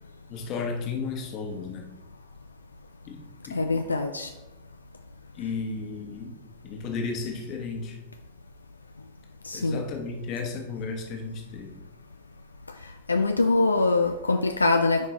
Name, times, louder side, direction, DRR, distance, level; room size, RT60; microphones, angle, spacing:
voice 1, 0.3-1.9 3.1-3.8 5.3-6.4 6.6-8.0 9.5-11.7, left 4 dB, 40° left, 1.3 m, -34 dB
voice 2, 3.5-4.3 9.4-9.9 13.1-15.1, left 3 dB, 80° left, 0.3 m, -23 dB
9.4 x 5.1 x 3.1 m
figure-of-eight pair, 90°, 0 cm